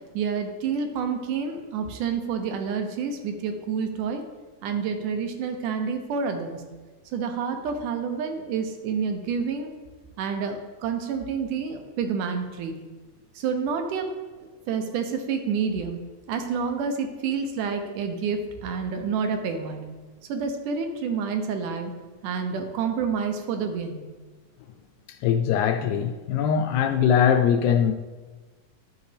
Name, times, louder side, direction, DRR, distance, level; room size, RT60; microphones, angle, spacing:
voice 1, 0.1-4.2 4.6-6.6 7.1-9.7 10.2-12.7 13.4-14.1 14.7-16.0 16.3-19.8 20.3-21.9 22.2-24.0, right 6 dB, 80° right, 2.4 m, -28 dB
voice 2, 25.1-27.9, left 8 dB, 80° left, 1.8 m, -21 dB
11.5 x 7.1 x 3.4 m
omnidirectional pair, 3.7 m